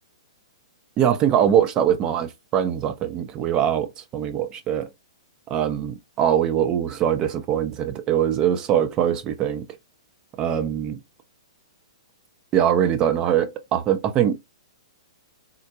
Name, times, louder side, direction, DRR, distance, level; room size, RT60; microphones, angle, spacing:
voice 1, 1.0-4.9 5.5-9.7 10.4-11.0 12.5-14.4, right 9 dB, 25° right, 0.5 m, -22 dB
3.7 x 2.1 x 2.7 m
figure-of-eight pair, 115°, 3 cm